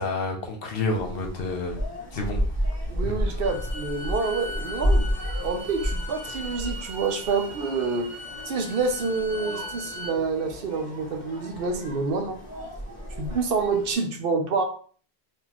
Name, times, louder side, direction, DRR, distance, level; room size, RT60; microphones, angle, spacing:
voice 1, 0.0-1.8 2.1-2.4 3.0-3.1, left 3 dB, 65° left, 2 dB, 1.0 m, -29 dB
sound 1, 0.9-13.9, equal, 20° left, 1.4 m, -32 dB
voice 2, 2.9-5.1 5.4-8.1 8.4-12.4 13.2-14.6, right 4 dB, 65° right, 4 dB, 0.8 m, -27 dB
Bowed string instrument, 3.4-10.2, left 1 dB, 5° left, 1.7 m, -39 dB
3.9 x 2.8 x 2.9 m, 0.43 s
omnidirectional pair, 1.1 m